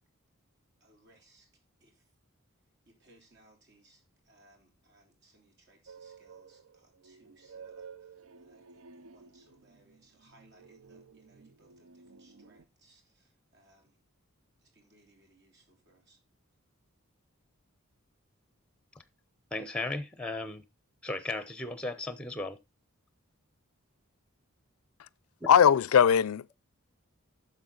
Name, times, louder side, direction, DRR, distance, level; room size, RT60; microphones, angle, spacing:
voice 1, 0.8-1.5 1.8-2.1 2.8-14.0 14.6-16.2, right 1 dB, 55° right, 3.4 m, -65 dB
sound 1, 5.9-12.6, right 5 dB, 80° right, 0.6 m, -53 dB
voice 2, 19.5-20.6 21.0-22.6, left 2 dB, 5° left, 0.8 m, -35 dB
voice 3, 25.5-26.6, left 8 dB, 90° left, 0.4 m, -20 dB
10.5 x 6.8 x 3.9 m
head